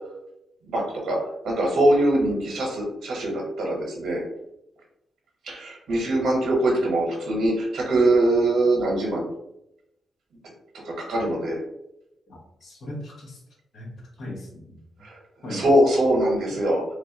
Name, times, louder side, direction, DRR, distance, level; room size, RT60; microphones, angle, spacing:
voice 1, 0.6-1.2 1.4-4.2 5.4-9.2 10.8-11.6 15.0-15.2 15.5-16.8, right 1 dB, 75° right, -1 dB, 0.8 m, -22 dB
voice 2, 12.3-13.4 13.7-13.9 14.2-14.8 15.4-15.6, left 1 dB, 65° left, -2 dB, 0.8 m, -37 dB
3.0 x 2.4 x 2.6 m, 0.86 s
wide cardioid pair, 130°, 0 cm